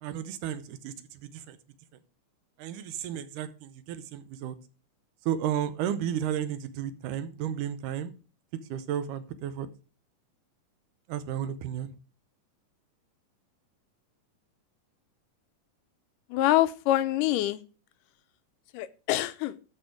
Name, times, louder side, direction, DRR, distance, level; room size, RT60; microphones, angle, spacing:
voice 1, 0.0-1.6 2.6-4.6 5.3-8.1 8.7-9.7 11.1-11.9, right 10 dB, 80° right, 12 dB, 2.3 m, -33 dB
voice 2, 16.3-17.6 18.7-19.6, left 15 dB, 85° left, 14 dB, 2.2 m, -25 dB
12.5 x 4.4 x 4.8 m, 0.35 s
omnidirectional pair, 3.8 m